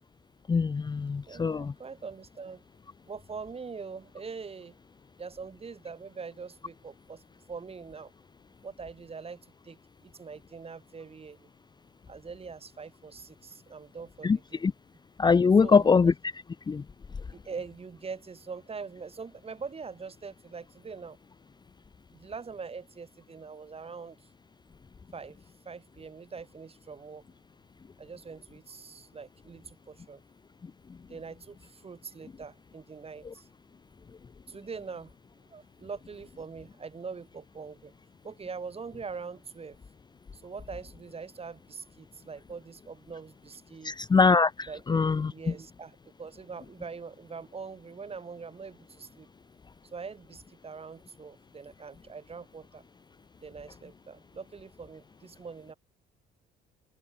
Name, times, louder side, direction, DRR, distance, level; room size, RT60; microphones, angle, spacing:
voice 1, 0.5-1.7 14.2-14.4 14.6-14.7 15.2-16.1 16.7-16.8 43.8-44.5 44.9-45.3, left 5 dB, 20° left, 0.7 m, -22 dB
voice 2, 1.3-2.6 3.1-4.7 5.2-7.2 7.5-8.1 8.6-11.5 12.1-14.6 15.6-16.1 17.3-21.2 22.1-24.3 25.1-25.4 25.6-27.2 28.0-30.2 31.1-33.5 34.5-35.1 35.5-37.9 38.2-39.8 40.3-44.1 44.7-49.3 49.9-52.8 53.4-55.7, right 5 dB, 30° right, 7.9 m, -43 dB
cardioid pair, 90°, 20 cm